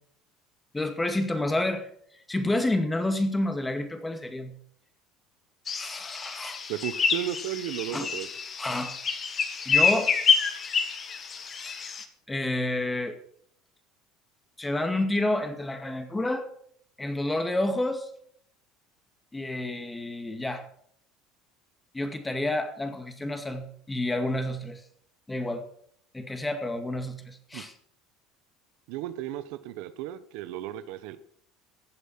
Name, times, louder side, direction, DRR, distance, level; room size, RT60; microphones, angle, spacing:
voice 1, 0.7-4.5 5.7-6.6 7.9-8.1 8.6-9.0 9.7-10.1 11.6-11.8 12.3-13.2 14.6-16.5 17.0-18.1 19.3-20.6 21.9-24.8 25.3-25.7 26.1-27.7, left 1 dB, 10° left, 7 dB, 2.1 m, -29 dB
sound 1, 5.7-12.0, left 5 dB, 35° left, 1.8 m, -27 dB
voice 2, 6.7-8.3 27.5-27.6 28.9-31.2, right 12 dB, 75° right, 13 dB, 1.0 m, -34 dB
15.0 x 8.1 x 5.9 m, 0.65 s
supercardioid pair, 105°, 0 cm